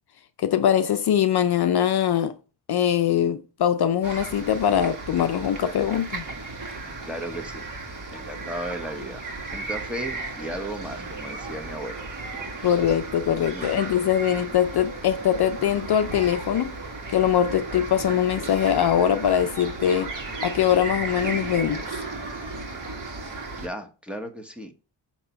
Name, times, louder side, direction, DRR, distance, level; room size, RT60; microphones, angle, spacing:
voice 1, 0.4-2.3 2.7-6.3 12.6-16.7 17.1-20.1 20.4-22.0, left 9 dB, 60° left, 0.6 m, -22 dB
sound 1, 4.0-23.7, right 3 dB, 45° right, 1.8 m, -35 dB
voice 2, 7.0-7.7 8.1-9.3 9.5-12.1 12.6-12.7 13.4-13.8 23.6-24.7, right 1 dB, ahead, 1.0 m, -35 dB
6.5 x 3.0 x 5.6 m
cardioid pair, 85°, 45 cm